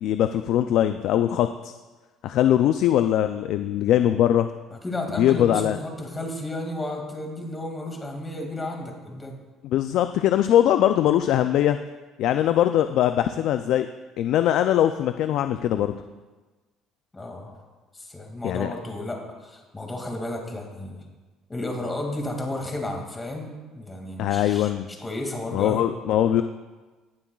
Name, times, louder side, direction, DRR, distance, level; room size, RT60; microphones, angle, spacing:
voice 1, 0.0-1.7 2.2-4.5 5.2-5.8 9.6-11.8 12.2-13.9 14.2-16.0 18.4-18.7 24.2-24.9 25.5-26.4, left 11 dB, 70° left, 9 dB, 0.3 m, -21 dB
voice 2, 4.7-9.4 17.1-17.6 17.9-21.0 21.5-25.9, left 1 dB, 20° left, 1 dB, 2.2 m, -33 dB
18.5 x 7.2 x 2.4 m, 1.3 s
cardioid pair, 105°, 0 cm